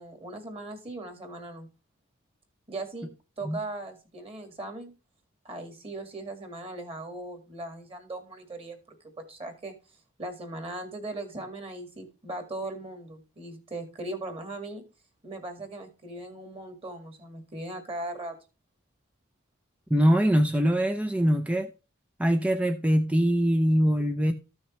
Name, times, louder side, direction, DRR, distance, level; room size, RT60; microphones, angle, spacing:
voice 1, 0.0-1.7 2.7-3.1 3.4-4.9 5.4-8.8 9.3-9.7 10.2-14.8 15.2-18.4, right 2 dB, 30° right, 1.9 m, -38 dB
voice 2, 19.9-21.7 22.2-24.3, equal, 5° right, 0.5 m, -23 dB
13.5 x 6.3 x 3.1 m
head